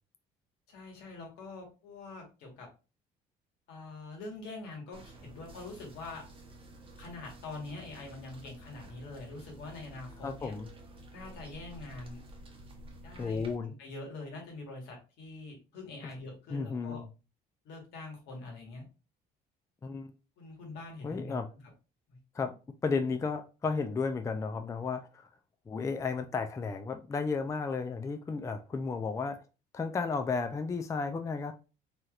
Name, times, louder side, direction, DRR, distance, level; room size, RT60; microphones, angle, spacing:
voice 1, 0.7-2.7 3.7-6.2 7.0-10.5 11.1-12.2 13.0-17.0 17.6-18.9 20.4-21.4 22.1-22.2, left 3 dB, 85° left, 1.4 m, -44 dB
sound 1, 4.9-13.5, right 1 dB, 30° right, 0.9 m, -51 dB
voice 2, 10.2-10.7 13.2-13.7 16.5-17.1 19.8-20.1 21.0-21.5 22.3-22.5 22.8-25.3 25.7-29.4 29.7-31.5, left 4 dB, 20° left, 0.3 m, -33 dB
3.2 x 2.8 x 2.4 m
cardioid pair, 110°, 17 cm